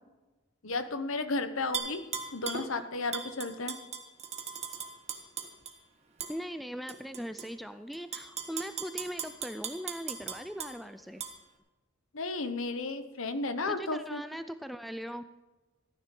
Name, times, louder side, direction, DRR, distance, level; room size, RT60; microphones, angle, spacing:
voice 1, 0.6-3.7 12.1-14.2, left 3 dB, 70° left, 10 dB, 1.0 m, -33 dB
Tap / Glass, 1.7-2.7 3.1-5.7 6.2-6.3 6.9-7.5 7.9-10.7 11.2-11.3, right 6 dB, 30° right, 1.5 m, -37 dB
voice 2, 6.3-11.3 13.7-15.2, equal, ahead, 10 dB, 0.4 m, -40 dB
15.0 x 10.5 x 5.4 m, 1.2 s
head